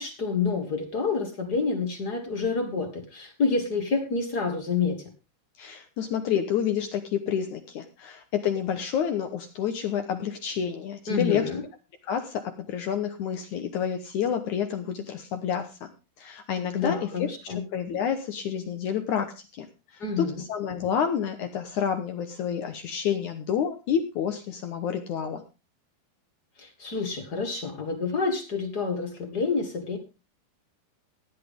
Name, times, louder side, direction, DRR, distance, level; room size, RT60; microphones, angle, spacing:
voice 1, 0.0-5.0 11.1-11.6 16.7-17.6 20.0-20.4 26.6-30.0, left 4 dB, 45° left, 6 dB, 1.2 m, -28 dB
voice 2, 5.6-11.5 12.0-15.9 16.2-17.1 17.4-19.7 19.9-25.4, left 8 dB, 70° left, 7 dB, 1.9 m, -29 dB
17.0 x 10.0 x 3.7 m, 0.29 s
omnidirectional pair, 4.7 m